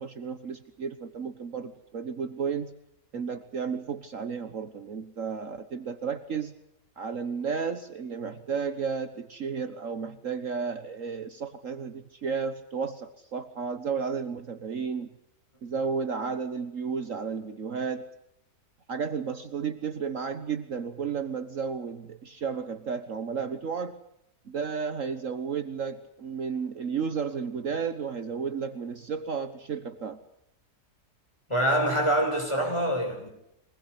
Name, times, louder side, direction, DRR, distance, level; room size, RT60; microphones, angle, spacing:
voice 1, 0.0-2.7 3.1-6.5 7.0-15.1 15.6-18.1 18.9-24.0 24.4-30.2, right 6 dB, 55° right, 1.6 m, -33 dB
voice 2, 31.5-33.3, right 1 dB, 15° left, 7.3 m, -25 dB
23.5 x 20.5 x 8.4 m
omnidirectional pair, 1.6 m